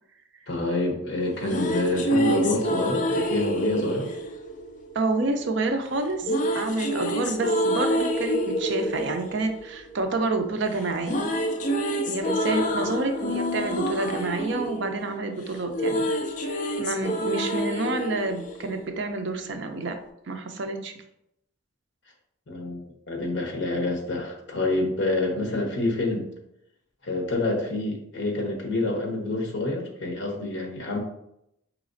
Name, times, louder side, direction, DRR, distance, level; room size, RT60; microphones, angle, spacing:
voice 1, 0.5-4.1 12.5-12.7 22.5-22.8 23.1-26.3 27.0-31.0, left 2 dB, 55° left, 0 dB, 0.9 m, -27 dB
sound 1, 1.2-5.4 6.2-10.5 10.7-19.2, equal, 35° left, 0.3 m, -28 dB
voice 2, 4.9-11.3 12.1-16.1 16.4-20.0 20.3-20.9, right 3 dB, 55° right, 6 dB, 0.4 m, -28 dB
4.9 x 2.9 x 2.6 m, 0.80 s
head